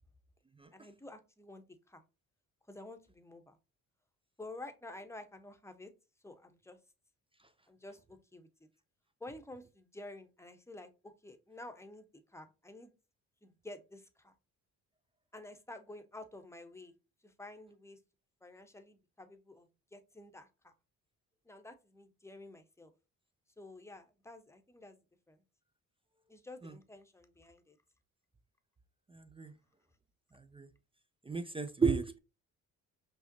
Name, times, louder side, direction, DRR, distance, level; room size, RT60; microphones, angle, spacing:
voice 1, 0.7-2.0 2.7-3.6 4.4-5.9 6.2-6.8 7.7-8.5 9.2-12.9 13.4-14.3 15.3-16.9 17.2-18.0 18.4-20.7 21.4-22.9 23.6-25.0 25.3-25.4 26.3-27.8, left 2 dB, 10° left, 0.8 m, -51 dB
voice 2, 29.1-29.5 30.5-30.7 31.3-32.2, right 5 dB, 15° right, 0.4 m, -32 dB
5.6 x 2.0 x 2.6 m
supercardioid pair, 60°, 36 cm